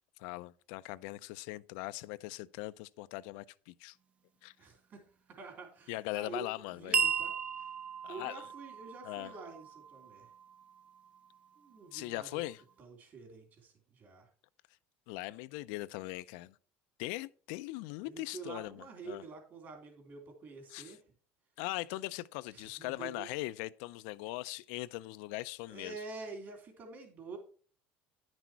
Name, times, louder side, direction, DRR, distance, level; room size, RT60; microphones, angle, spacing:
voice 1, 0.2-4.0 4.4-4.5 5.9-7.0 8.0-8.5 9.0-9.4 11.9-12.6 15.1-16.5 17.0-19.2 20.7-21.0 21.6-26.0, left 19 dB, 80° left, 0.4 m, -40 dB
voice 2, 4.6-7.7 8.1-10.3 11.6-12.4 12.8-14.3 18.0-21.0 22.5-23.3 25.7-27.4, right 4 dB, 40° right, 3.3 m, -48 dB
sound 1, 6.9-11.6, right 6 dB, 25° right, 0.5 m, -36 dB
10.5 x 6.1 x 4.5 m
cardioid pair, 145°, 5 cm